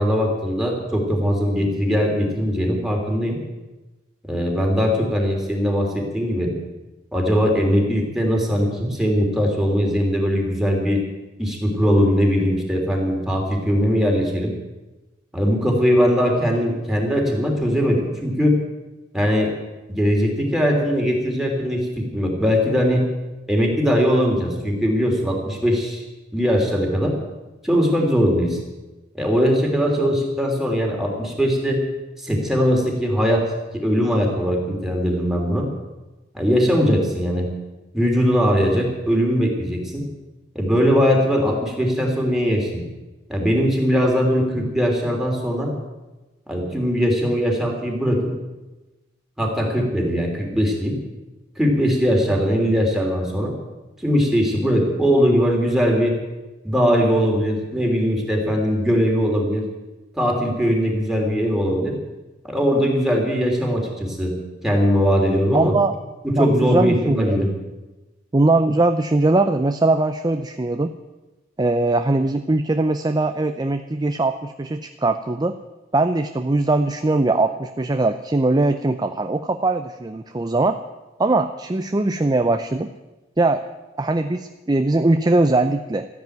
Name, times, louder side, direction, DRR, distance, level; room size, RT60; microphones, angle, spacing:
voice 1, 0.0-3.4 4.3-6.5 7.1-11.0 11.4-14.5 15.3-18.6 19.1-19.5 19.9-23.0 23.5-26.0 26.3-27.1 27.6-28.6 29.1-31.8 32.2-33.4 33.7-35.6 36.3-37.5 37.9-40.0 40.5-42.8 43.3-45.7 46.5-48.3 49.4-50.9 51.6-53.5 54.0-56.1 56.6-59.6 60.2-61.9 62.5-64.3 64.6-65.7 66.2-67.5, equal, ahead, -1 dB, 3.3 m, -20 dB
voice 2, 65.5-65.9 66.4-67.4 68.3-70.9 71.6-75.5 75.9-80.8 81.2-82.9 83.4-83.6 84.0-86.1, right 2 dB, 20° right, 9 dB, 0.5 m, -20 dB
13.5 x 10.5 x 9.3 m, 1.1 s
head